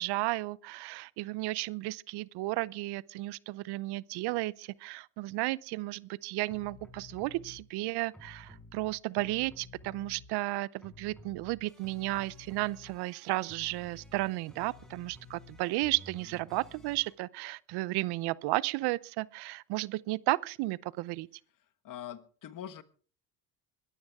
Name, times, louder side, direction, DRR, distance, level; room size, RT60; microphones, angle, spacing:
voice 1, 0.0-21.3, right 20 dB, 70° right, 0.7 m, -33 dB
sound 1, 6.5-7.6 8.1-10.5 10.8-17.1, left 3 dB, ahead, 6.3 m, -53 dB
voice 2, 21.8-22.8, left 10 dB, 50° left, 1.5 m, -43 dB
21.0 x 14.0 x 3.6 m
supercardioid pair, 80°, 41 cm